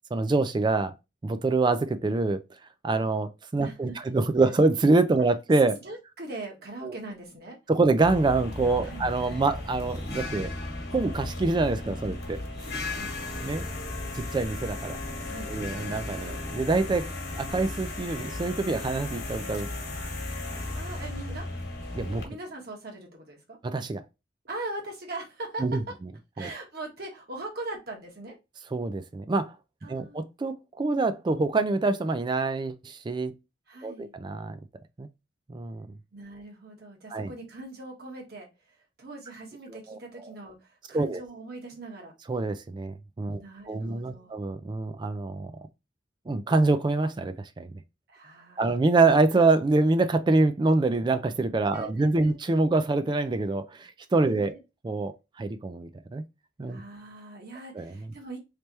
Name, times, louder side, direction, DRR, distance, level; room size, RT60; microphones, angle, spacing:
voice 1, 0.1-0.9 1.2-2.4 2.8-5.8 6.8-7.0 7.7-10.5 10.9-12.4 13.4-13.6 14.1-15.0 15.5-17.1 17.4-19.7 21.9-22.2 23.6-24.0 25.6-25.8 26.4-26.5 28.7-29.6 29.9-33.3 33.8-34.6 35.0-35.1 35.5-35.9 37.1-37.3 39.7-40.3 40.9-41.2 42.3-45.5 46.3-47.7 48.6-54.5 54.8-55.1 55.4-56.2 56.6-56.8 57.7-57.9, right 3 dB, 25° right, 0.3 m, -25 dB
voice 2, 3.6-3.9 5.8-7.6 8.8-9.1 12.9-13.3 15.2-15.7 20.7-21.5 22.2-23.6 24.4-25.9 26.3-28.4 29.8-30.2 33.7-34.1 36.1-42.1 43.3-44.4 48.1-48.8 51.7-52.4 54.3-54.6 56.7-58.4, right 2 dB, 55° right, 1.3 m, -41 dB
sound 1, 8.0-22.2, left 2 dB, 60° left, 1.2 m, -35 dB
3.3 x 3.2 x 2.9 m
head